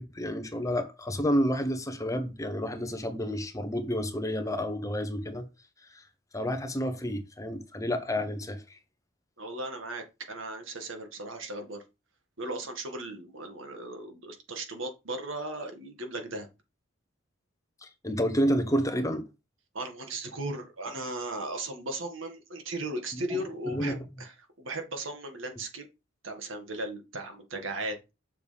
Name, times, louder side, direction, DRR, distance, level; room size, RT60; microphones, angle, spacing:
voice 1, 0.0-5.5 5.9-6.0 6.3-8.8 17.8-19.2 23.7-23.9, equal, 15° left, 0.9 m, -30 dB
voice 2, 9.4-11.8 12.4-16.5 19.7-25.8 26.2-28.0, right 2 dB, 85° right, 2.0 m, -37 dB
7.1 x 6.8 x 3.4 m
head